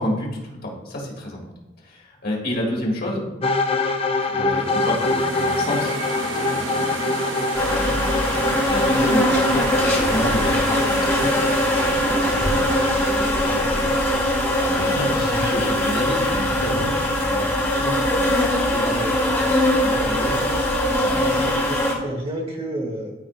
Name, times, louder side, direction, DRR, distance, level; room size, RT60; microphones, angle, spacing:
voice 1, 0.0-1.4 1.8-3.2 4.3-7.0 7.4-11.3 11.8-18.8 19.2-21.5, left 1 dB, 55° left, -3 dB, 2.2 m, -30 dB
sound 1, 3.4-15.2, left 3 dB, 30° left, 0.5 m, -26 dB
sound 2, 4.5-15.5, right 4 dB, 85° right, 0.7 m, -32 dB
sound 3, 7.5-21.9, left 1 dB, 10° left, 1.3 m, -21 dB
voice 2, 21.1-23.2, right 1 dB, 30° right, 1 dB, 1.4 m, -31 dB
13.0 x 4.4 x 2.5 m, 1.0 s
head